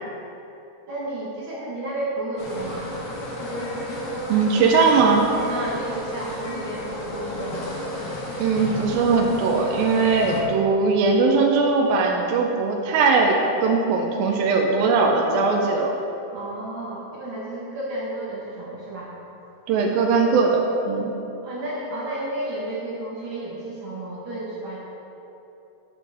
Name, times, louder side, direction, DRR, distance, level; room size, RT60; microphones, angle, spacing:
voice 1, 0.9-2.9 5.5-7.8 16.3-19.1 21.4-24.8, right 1 dB, 55° right, -7 dB, 1.4 m, -32 dB
sound 1, 2.4-10.4, left 1 dB, 60° left, 1.2 m, -32 dB
voice 2, 4.3-5.3 8.4-16.0 19.7-21.1, right 4 dB, 90° right, 1 dB, 2.5 m, -20 dB
10.0 x 8.2 x 3.5 m, 2.9 s
omnidirectional pair, 4.1 m